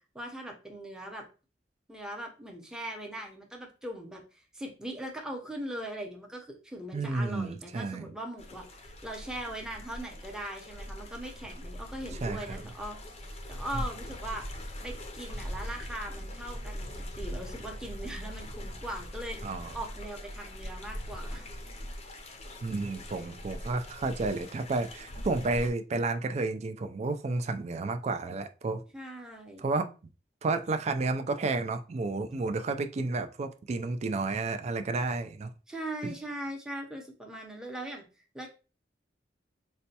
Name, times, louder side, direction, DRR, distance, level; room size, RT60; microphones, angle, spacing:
voice 1, 0.1-1.2 1.9-14.5 14.8-21.4 28.9-29.6 35.7-38.0 38.3-38.5, right 1 dB, 5° right, 0.7 m, -40 dB
voice 2, 6.9-8.1 12.2-12.6 13.7-13.8 19.4-19.7 22.6-28.8 29.6-29.9 30.4-35.5 36.0-36.1, right 3 dB, 40° right, 0.3 m, -31 dB
sound 1, 8.4-25.7, equal, 35° left, 0.6 m, -41 dB
4.1 x 2.2 x 2.8 m
head